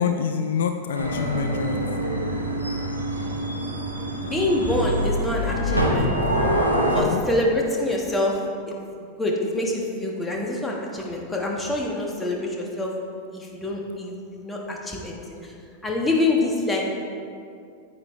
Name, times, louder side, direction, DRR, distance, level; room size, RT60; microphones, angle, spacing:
voice 1, 0.0-1.9 7.0-7.2, left 7 dB, 60° left, 7 dB, 0.4 m, -26 dB
sound 1, 0.9-7.0, equal, 85° right, 1.0 m, -25 dB
voice 2, 4.2-6.5 6.9-8.4 9.2-12.9 13.3-15.5 15.8-16.8, left 2 dB, 10° left, -1 dB, 1.4 m, -26 dB
9.5 x 8.5 x 3.3 m, 2.4 s
figure-of-eight pair, 90°, 0 cm